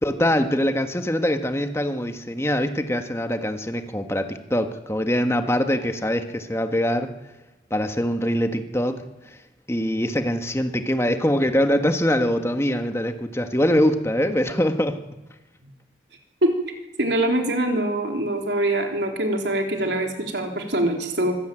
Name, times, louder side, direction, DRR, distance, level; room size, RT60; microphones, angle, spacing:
voice 1, 0.0-7.1 7.7-9.0 9.7-15.0, equal, 15° left, 6 dB, 1.5 m, -23 dB
voice 2, 17.0-21.3, right 1 dB, 75° right, 3 dB, 3.7 m, -23 dB
25.0 x 16.5 x 9.1 m, 1.0 s
head